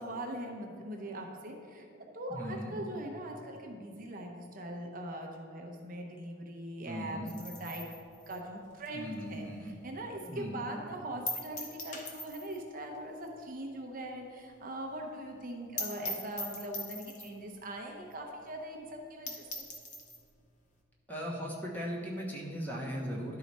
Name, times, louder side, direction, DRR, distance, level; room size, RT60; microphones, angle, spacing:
voice 1, 0.0-1.9 2.1-7.9 8.3-19.7, right 1 dB, 45° right, 1 dB, 0.7 m, -41 dB
voice 2, 2.3-2.8 6.8-7.3 8.9-9.8 10.3-10.7 21.1-23.4, equal, 10° left, -3 dB, 1.1 m, -38 dB
sound 1, 7.3-9.9 10.2-10.3 10.7-10.8 11.3-12.7 12.9-13.0 13.3-13.4 13.8-13.9 14.2-14.3 14.5-14.6 15.0-15.1 15.4-15.5 15.8-17.4 18.1-18.2 18.5-18.6 19.0-19.1 19.3-20.2, left 2 dB, 40° left, 0.9 m, -41 dB
11.5 x 4.8 x 4.1 m, 2.4 s
head